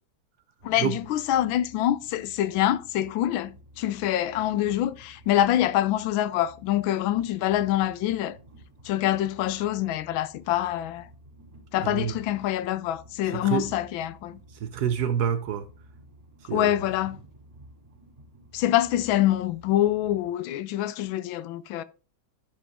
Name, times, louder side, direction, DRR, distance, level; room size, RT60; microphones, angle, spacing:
voice 1, 0.6-8.4 8.8-11.1 11.7-14.4 16.5-17.2 18.5-21.8, left 13 dB, 85° left, 1.4 m, -25 dB
Train, 0.6-20.3, right 1 dB, 45° right, 3.3 m, -52 dB
voice 2, 11.8-12.1 13.3-13.7 14.6-15.7 16.5-16.8, right 8 dB, 65° right, 1.1 m, -27 dB
11.0 x 5.1 x 3.5 m
omnidirectional pair, 2.1 m